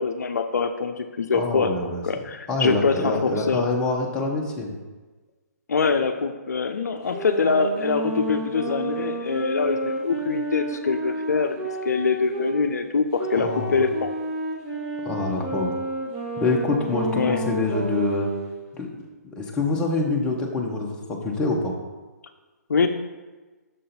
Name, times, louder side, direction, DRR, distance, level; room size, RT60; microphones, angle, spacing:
voice 1, 0.0-3.6 5.7-14.1 17.1-17.4 22.7-22.9, left 5 dB, 70° left, 7 dB, 0.5 m, -24 dB
voice 2, 1.3-2.0 2.5-4.8 13.3-13.8 15.0-15.8 16.4-18.3 18.7-18.9 19.3-21.7, left 3 dB, 10° left, -1 dB, 0.8 m, -25 dB
sound 1, 7.1-12.5 13.2-18.5, right 1 dB, 30° right, 1.3 m, -30 dB
6.6 x 3.8 x 4.3 m, 1.3 s
figure-of-eight pair, 135°, 9 cm